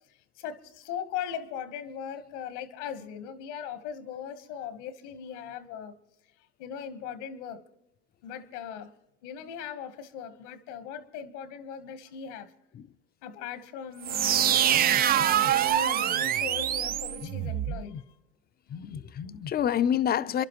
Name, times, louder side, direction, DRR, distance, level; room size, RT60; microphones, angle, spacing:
voice 1, 0.4-6.0 6.6-7.6 8.2-8.9 9.2-12.5 13.2-18.0, left 8 dB, 80° left, 1.4 m, -39 dB
sound 1, 14.0-17.8, right 10 dB, 30° right, 0.4 m, -25 dB
voice 2, 14.7-15.5 17.2-18.0 18.7-20.4, left 9 dB, 25° left, 0.6 m, -30 dB
28.5 x 11.5 x 3.0 m
hypercardioid pair, 90°, 34 cm